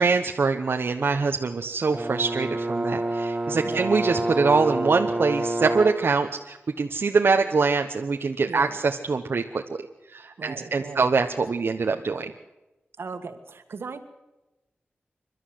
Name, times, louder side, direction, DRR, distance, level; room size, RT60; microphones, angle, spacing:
voice 1, 0.0-12.3, right 4 dB, 70° right, 4 dB, 1.2 m, -24 dB
Brass instrument, 1.9-6.1, right 1 dB, 25° right, 1.9 m, -28 dB
voice 2, 8.5-8.8 10.4-11.1 13.0-14.0, right 4 dB, 85° right, 9 dB, 1.9 m, -37 dB
28.5 x 12.5 x 7.9 m, 1.0 s
wide cardioid pair, 85°, 4 cm